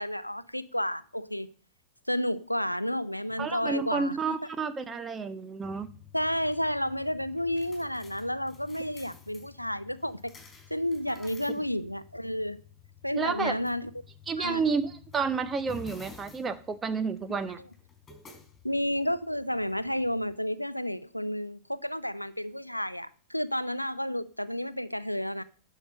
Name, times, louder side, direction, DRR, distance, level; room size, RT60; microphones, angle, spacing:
voice 1, 0.0-1.5 2.1-4.4 6.1-10.3 10.7-12.6 13.0-13.9 14.4-14.6 18.6-25.4, equal, 90° left, 0.5 m, -31 dB
voice 2, 3.4-5.9 13.2-13.5 14.3-17.6, right 5 dB, 20° right, 1.1 m, -30 dB
sound 1, 5.6-20.4, left 6 dB, 20° left, 4.6 m, -52 dB
10.5 x 6.1 x 6.6 m
figure-of-eight pair, 90°, 0 cm